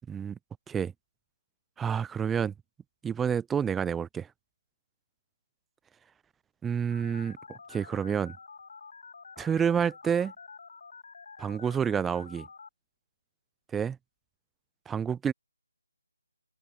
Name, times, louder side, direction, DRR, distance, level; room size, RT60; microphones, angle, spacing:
voice 1, 0.1-0.4 0.7-0.9 1.8-2.5 3.0-4.3 6.6-8.4 9.4-10.3 11.4-12.5 13.7-14.0 14.9-15.3, right 7 dB, 5° right, 0.3 m, -29 dB
Telephone, 6.9-12.7, left 5 dB, 55° left, 2.4 m, -49 dB
figure-of-eight pair, 160°, 0 cm